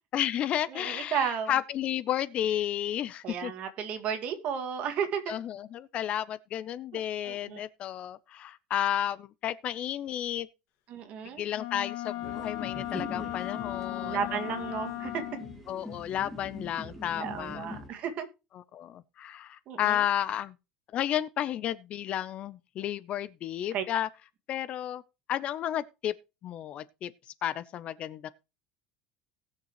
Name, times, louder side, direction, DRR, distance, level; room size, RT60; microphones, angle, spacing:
voice 1, 0.1-3.5 5.3-10.5 11.4-14.4 15.7-17.7 18.7-20.5 20.9-24.1 24.5-25.0 25.3-26.1 26.4-27.1 27.4-28.3, left 11 dB, 40° left, 0.6 m, -32 dB
voice 2, 0.7-1.5 3.2-5.3 7.2-7.6 10.9-11.4 13.9-15.2 17.2-18.3 19.7-20.0 23.7-23.8, right 7 dB, 45° right, 2.0 m, -33 dB
Wind instrument woodwind instrument, 11.5-15.6, left 15 dB, 65° left, 1.8 m, -36 dB
sound 1, 12.2-17.9, left 2 dB, 5° left, 2.0 m, -43 dB
19.0 x 6.7 x 3.0 m
cardioid pair, 150°, 3 cm